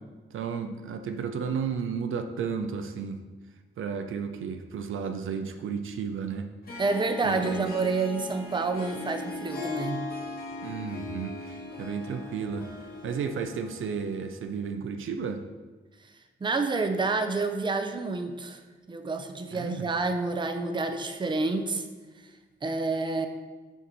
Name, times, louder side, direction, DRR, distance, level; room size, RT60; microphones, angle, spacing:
voice 1, 0.3-3.2 3.8-6.5 7.2-7.6 10.6-12.7 13.0-15.5 19.5-19.9, right 6 dB, 80° right, 7 dB, 0.5 m, -33 dB
Harp, 6.6-14.4, left 3 dB, 50° left, 1.2 m, -39 dB
voice 2, 6.8-10.0 16.4-18.6 18.9-21.8 22.6-23.3, right 3 dB, 25° right, 7 dB, 0.5 m, -28 dB
5.9 x 4.4 x 4.0 m, 1.3 s
cardioid pair, 90°, 20 cm